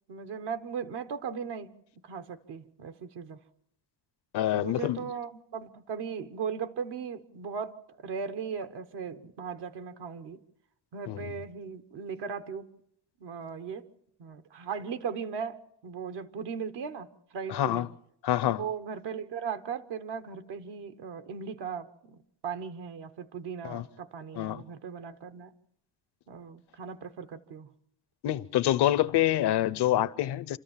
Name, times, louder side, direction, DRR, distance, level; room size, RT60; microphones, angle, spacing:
voice 1, 0.1-1.7 2.0-3.4 4.5-10.4 10.9-12.7 13.2-13.8 14.2-15.6 15.8-17.1 17.3-17.8 18.4-25.5 26.3-27.7, right 6 dB, 85° right, 1.2 m, -38 dB
voice 2, 4.3-5.0 11.1-11.3 17.5-17.9 18.2-18.6 23.6-23.8 24.3-24.6 28.2-30.6, left 13 dB, 80° left, 0.8 m, -26 dB
28.0 x 13.0 x 7.3 m
cardioid pair, 100°, 40 cm